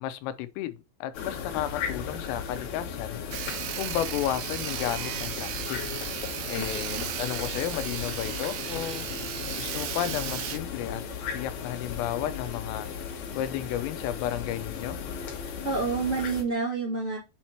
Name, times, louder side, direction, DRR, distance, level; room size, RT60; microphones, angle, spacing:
voice 1, 0.0-3.2 3.7-5.8 6.5-9.0 9.6-11.0 11.3-12.9 13.4-15.0, left 11 dB, 85° left, 3.3 m, -33 dB
sound 1, 1.1-16.4, left 6 dB, 65° left, 2.8 m, -36 dB
Sawing, 3.3-10.6, right 12 dB, 90° right, 3.3 m, -35 dB
voice 2, 6.5-7.1 15.6-17.2, right 4 dB, 60° right, 0.7 m, -29 dB
8.0 x 3.0 x 4.4 m
omnidirectional pair, 5.9 m